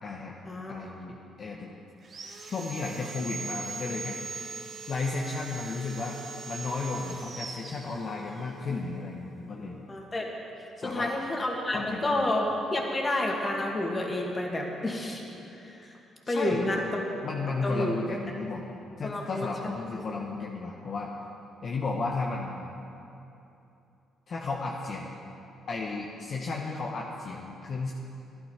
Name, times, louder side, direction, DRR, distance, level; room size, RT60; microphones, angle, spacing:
voice 1, 0.0-0.4 0.7-1.7 2.4-4.5 4.9-6.2 6.5-9.8 10.8-11.1 11.7-12.3 16.2-17.0 17.2-21.1 21.6-22.7 24.3-25.1 25.7-27.9, left 3 dB, 55° left, -2 dB, 1.2 m, -34 dB
Sawing, 2.0-8.5, right 4 dB, 50° right, 1.5 m, -40 dB
voice 2, 9.9-10.3 10.8-15.2 15.6-15.9 16.3-17.1 17.6-18.0 19.0-19.5, left 1 dB, 30° left, 0 dB, 2.5 m, -29 dB
12.5 x 11.0 x 5.8 m, 2.9 s
supercardioid pair, 65°, 0 cm